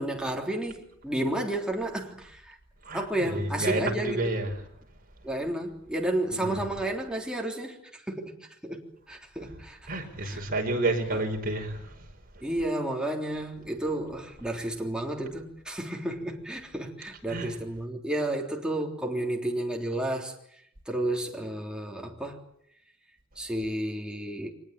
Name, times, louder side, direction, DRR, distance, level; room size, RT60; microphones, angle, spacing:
voice 1, 0.0-2.6 2.9-4.4 5.2-8.3 8.6-10.4 11.1-11.2 12.4-20.3 20.9-22.4 23.4-24.5, right 1 dB, 5° right, 3.5 m, -32 dB
voice 2, 2.8-4.5 6.3-6.7 9.9-11.9 17.3-17.6, right 2 dB, 45° right, 5.6 m, -30 dB
24.0 x 20.5 x 9.1 m
head